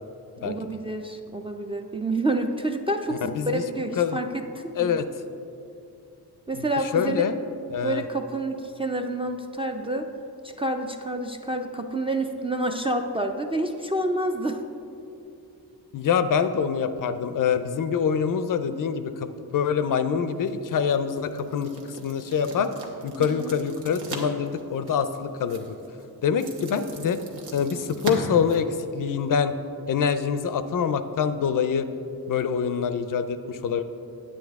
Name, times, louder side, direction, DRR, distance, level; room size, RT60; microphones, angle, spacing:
voice 1, 0.4-4.9 6.5-7.3 7.8-10.1 10.4-14.6 23.2-23.5, right 1 dB, 15° right, 4 dB, 0.3 m, -28 dB
voice 2, 4.8-5.1 6.5-7.4 7.7-8.0 15.9-21.7 22.0-22.7 23.0-25.7 26.2-27.2 27.5-29.5 29.9-31.9 32.3-33.8, left 7 dB, 55° left, 11 dB, 0.5 m, -25 dB
sound 1, 20.3-29.3, right 3 dB, 85° right, 1.2 m, -40 dB
9.3 x 8.5 x 3.5 m, 2.7 s
wide cardioid pair, 130°, 39 cm